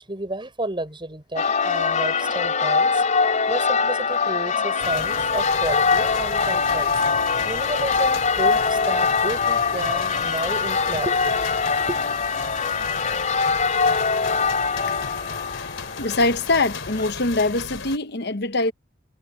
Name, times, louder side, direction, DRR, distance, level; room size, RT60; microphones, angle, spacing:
voice 1, 0.0-3.0 3.5-6.9 7.4-12.0, right 2 dB, 25° right, 6.3 m, -31 dB
Church bell, 1.4-17.1, left 5 dB, 40° left, 3.6 m, -23 dB
sound 1, 4.8-18.0, left 5 dB, 80° left, 3.6 m, -35 dB
voice 2, 16.0-18.7, left 2 dB, 60° left, 1.1 m, -23 dB
head